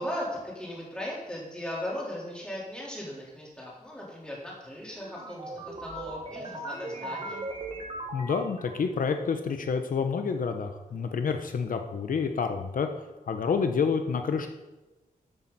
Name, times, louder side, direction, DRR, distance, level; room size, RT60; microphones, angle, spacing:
voice 1, 0.0-7.4 10.9-11.0, equal, 5° left, -6 dB, 3.9 m, -37 dB
sound 1, 4.9-9.1, right 2 dB, 35° right, 1.6 m, -38 dB
voice 2, 8.1-12.9 13.3-14.5, left 5 dB, 75° left, 6 dB, 0.8 m, -28 dB
13.5 x 8.8 x 4.2 m, 1.1 s
wide cardioid pair, 170°, 14 cm